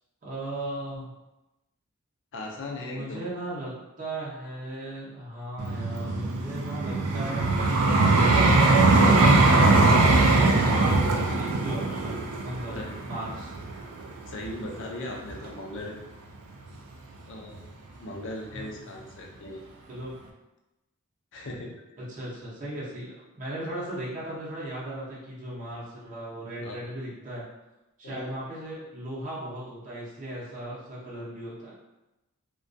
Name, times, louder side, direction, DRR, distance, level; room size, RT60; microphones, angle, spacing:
voice 1, 0.2-1.1 2.8-7.6 10.6-13.6 17.7-18.0 18.5-19.0 19.9-20.2 22.0-27.4 28.0-31.8, right 1 dB, 35° right, -8 dB, 0.6 m, -37 dB
voice 2, 2.3-3.2 12.7-12.9 14.3-16.0 17.3-17.6 18.0-19.6 21.3-21.7 26.6-26.8 28.0-28.3, left 1 dB, 55° left, 0 dB, 0.4 m, -38 dB
Vehicle, 5.6-14.7 15.3-15.5, right 2 dB, 75° right, 0.3 m, -21 dB
2.2 x 2.2 x 2.5 m, 0.98 s
head